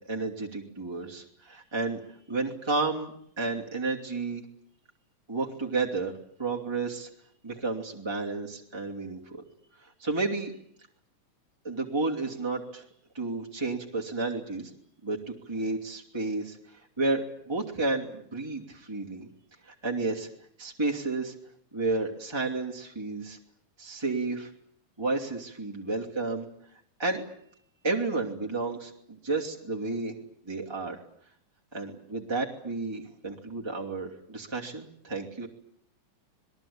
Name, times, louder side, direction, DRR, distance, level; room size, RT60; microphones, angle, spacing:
voice 1, 0.0-2.0 2.3-4.4 5.3-7.1 7.4-9.4 9.8-10.5 11.6-12.8 13.1-14.7 15.0-15.2 15.5-19.3 19.6-20.3 20.6-21.3 21.7-23.4 23.8-24.5 25.0-26.5 27.0-27.2 27.8-30.2 30.5-31.0 31.7-35.5, right 3 dB, 10° right, -2 dB, 2.5 m, -31 dB
27.0 x 21.0 x 8.8 m, 0.67 s
omnidirectional pair, 3.5 m